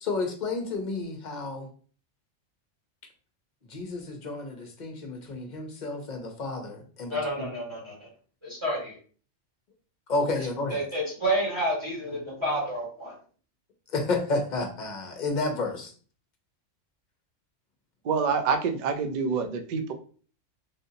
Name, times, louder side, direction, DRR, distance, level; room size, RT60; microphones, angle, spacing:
voice 1, 0.0-1.7 3.6-7.5 10.1-10.8 13.9-15.9, left 3 dB, 45° left, 3 dB, 0.7 m, -31 dB
voice 2, 7.1-8.1 8.4-8.9 10.7-13.1, right 1 dB, 25° right, -6 dB, 1.5 m, -29 dB
voice 3, 18.0-19.9, right 5 dB, 70° right, 7 dB, 0.4 m, -26 dB
3.4 x 2.6 x 2.7 m, 0.42 s
omnidirectional pair, 1.3 m